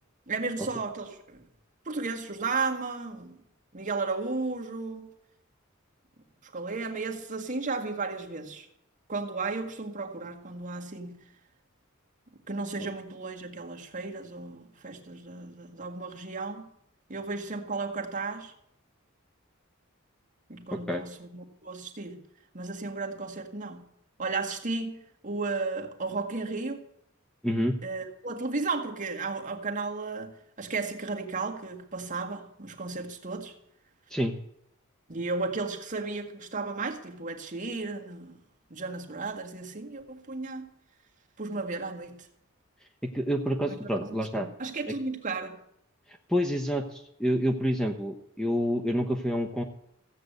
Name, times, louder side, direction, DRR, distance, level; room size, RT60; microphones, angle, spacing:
voice 1, 0.3-1.4 1.9-3.4 3.7-5.1 6.4-8.7 9.1-11.2 12.5-16.7 17.1-18.5 20.5-22.2 22.5-23.9 24.2-26.8 27.8-33.5 35.1-38.4 38.7-40.7 41.4-42.3 43.6-43.8 44.0-45.6, right 3 dB, 35° right, 1.8 m, -34 dB
voice 2, 20.7-21.0 27.4-27.8 34.1-34.3 43.1-44.5 44.9-45.0 46.1-49.6, equal, 5° left, 0.9 m, -28 dB
15.5 x 7.9 x 8.0 m
head